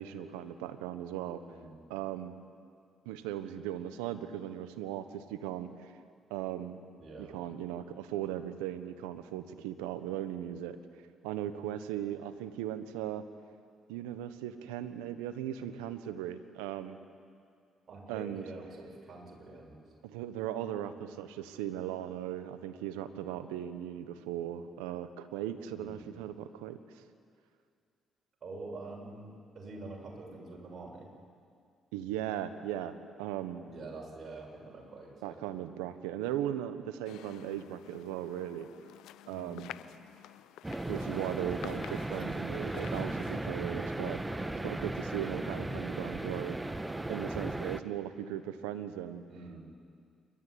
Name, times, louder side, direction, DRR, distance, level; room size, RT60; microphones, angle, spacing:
voice 1, 0.0-1.4 1.9-2.3 3.0-5.9 6.3-6.8 7.2-10.8 11.2-13.2 13.9-17.0 18.1-18.4 20.0-26.8 31.9-33.6 35.2-38.7 39.3-39.7 40.9-44.2 44.6-46.6 47.1-49.2, right 11 dB, 85° right, 11 dB, 1.1 m, -38 dB
voice 2, 7.0-7.3 17.9-19.8 25.7-26.1 28.4-31.1 33.6-35.4 39.3-39.6 44.3-44.6 49.3-49.6, right 2 dB, 50° right, -1 dB, 7.3 m, -46 dB
sound 1, 37.0-43.4, left 13 dB, 75° left, 0.6 m, -50 dB
sound 2, 40.6-47.8, right 2 dB, 15° right, 1.3 m, -36 dB
28.0 x 13.0 x 9.9 m, 2.2 s
hypercardioid pair, 55°, 0 cm